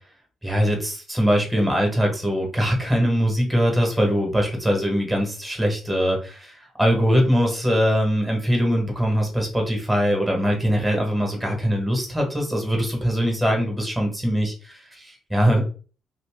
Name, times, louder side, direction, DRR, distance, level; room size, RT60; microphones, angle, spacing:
voice 1, 0.4-15.6, equal, 10° right, 1 dB, 1.3 m, -22 dB
2.8 x 2.5 x 3.4 m, 0.37 s
cardioid pair, 90°, 0 cm